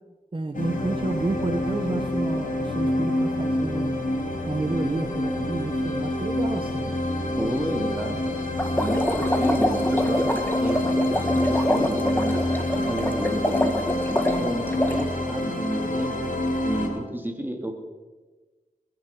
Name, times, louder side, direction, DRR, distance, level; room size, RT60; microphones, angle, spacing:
voice 1, 0.3-4.0 4.5-6.9, right 2 dB, 40° right, 7 dB, 1.0 m, -30 dB
sound 1, 0.5-16.9, left 1 dB, 70° left, 3.2 m, -27 dB
voice 2, 7.4-8.3 8.7-10.8 11.2-13.8 14.1-16.2 16.6-17.7, right 1 dB, 15° right, 3 dB, 2.9 m, -31 dB
sound 2, 8.6-15.1, left 1 dB, 15° left, 1.9 m, -26 dB
21.0 x 11.0 x 5.4 m, 1.3 s
cardioid pair, 50°, 14 cm